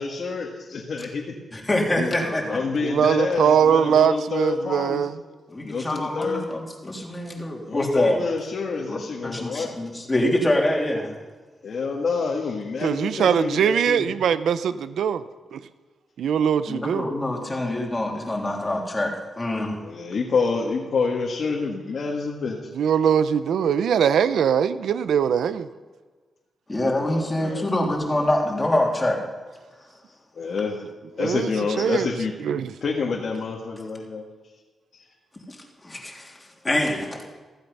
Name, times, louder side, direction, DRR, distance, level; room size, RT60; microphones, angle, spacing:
voice 1, 0.0-1.3 1.9-2.2 2.5-5.0 5.6-6.5 7.7-9.7 11.6-14.1 19.8-22.6 26.9-27.6 30.3-30.8 31.2-32.3 32.8-34.2, left 4 dB, 50° left, 1.9 m, -27 dB
voice 2, 1.5-2.7 5.5-8.2 8.9-11.1 16.7-19.8 26.7-29.2 35.5-35.6 35.8-36.3 36.6-37.2, left 1 dB, 15° left, 3.1 m, -25 dB
voice 3, 2.8-5.2 12.8-15.2 15.5-15.6 16.2-17.1 22.7-25.7 31.2-31.5 31.8-32.1 32.4-32.7, right 8 dB, 85° right, 0.8 m, -21 dB
15.5 x 15.0 x 5.6 m
wide cardioid pair, 155°, 0 cm